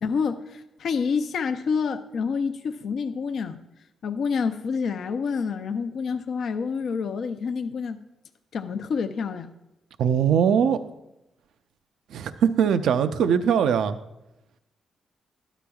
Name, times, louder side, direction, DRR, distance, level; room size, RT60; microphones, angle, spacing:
voice 1, 0.0-3.6 4.0-8.0 8.5-9.5, left 5 dB, 65° left, 8 dB, 0.5 m, -28 dB
voice 2, 10.0-10.8 12.1-14.0, right 8 dB, 80° right, 10 dB, 0.4 m, -21 dB
12.5 x 9.9 x 2.3 m, 0.93 s
cardioid pair, 75°, 0 cm